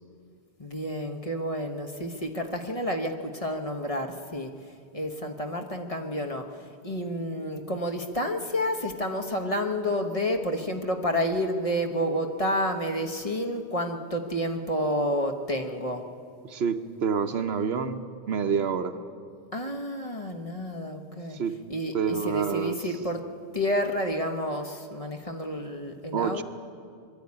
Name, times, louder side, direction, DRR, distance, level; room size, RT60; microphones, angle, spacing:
voice 1, 0.6-4.5 4.9-6.4 6.8-16.0 19.5-21.4 21.7-23.2 23.5-26.4, equal, 30° left, 3 dB, 1.2 m, -30 dB
voice 2, 16.4-19.0 21.3-21.6 21.9-22.9 26.1-26.4, right 6 dB, 70° right, 8 dB, 1.0 m, -28 dB
22.0 x 12.5 x 9.7 m, 2.4 s
omnidirectional pair, 1.1 m